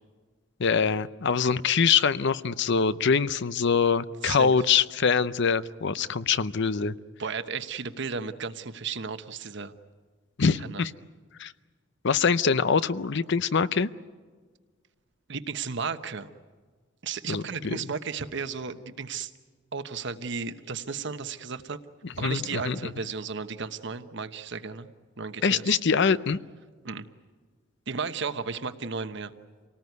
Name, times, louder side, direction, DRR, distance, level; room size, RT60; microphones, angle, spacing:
voice 1, 0.6-6.9 10.4-10.9 11.4-11.5 12.0-13.9 17.3-17.8 22.2-22.9 25.4-26.4, left 5 dB, 60° left, 15 dB, 0.7 m, -24 dB
voice 2, 4.2-4.5 7.2-9.7 10.6-10.8 15.3-16.3 17.0-19.3 19.7-21.8 22.2-24.9 25.2-25.7 26.8-27.1 27.9-29.3, right 5 dB, 65° right, 10 dB, 1.1 m, -34 dB
27.5 x 19.0 x 9.5 m, 1.5 s
head